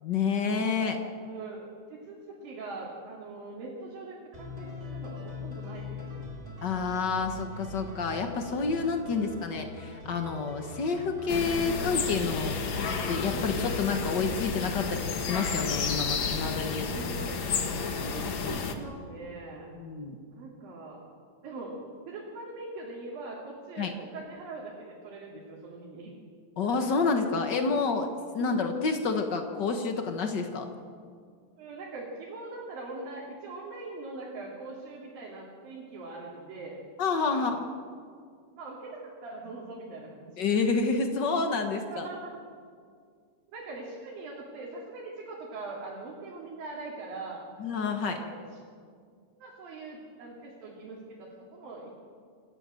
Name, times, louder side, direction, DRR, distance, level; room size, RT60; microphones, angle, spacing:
voice 1, 0.0-1.0 6.6-12.6 13.1-16.9 19.7-20.2 23.8-23.9 26.6-28.1 28.3-30.7 37.0-37.6 40.4-42.1 47.6-48.2, left 4 dB, 75° left, 5 dB, 1.0 m, -29 dB
voice 2, 1.3-6.3 9.2-9.6 16.8-17.4 18.0-19.7 20.3-21.0 21.4-21.8 22.1-26.1 28.4-28.5 31.6-36.8 37.3-37.5 38.6-40.4 41.9-42.3 43.5-47.4 47.9-48.4 49.4-51.9, right 3 dB, 80° right, -5 dB, 4.6 m, -42 dB
sound 1, 4.3-11.9, left 3 dB, 15° right, 2.1 m, -42 dB
sound 2, 11.3-18.8, left 5 dB, 50° left, 1.5 m, -31 dB
27.0 x 13.0 x 7.6 m, 2.1 s
omnidirectional pair, 4.0 m